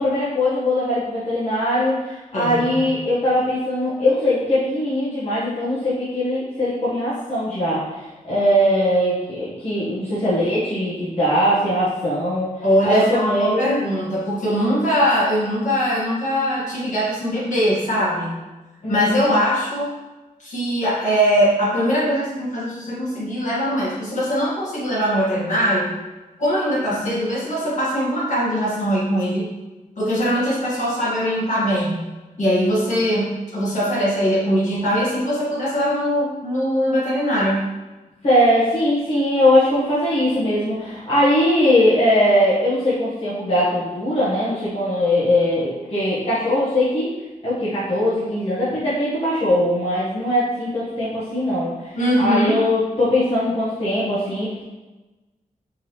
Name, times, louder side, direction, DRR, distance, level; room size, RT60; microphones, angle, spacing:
voice 1, 0.0-12.5 12.8-13.7 18.8-19.3 27.0-27.2 38.2-47.1 47.4-54.6, left 1 dB, 40° left, -11 dB, 1.1 m, -20 dB
voice 2, 2.3-2.9 12.6-18.3 18.9-19.9 20.4-25.9 26.4-29.5 30.0-32.0 32.4-37.6 51.9-52.6, equal, 60° left, -7 dB, 1.5 m, -21 dB
4.6 x 3.0 x 3.1 m, 1.1 s
wide cardioid pair, 165°, 15 cm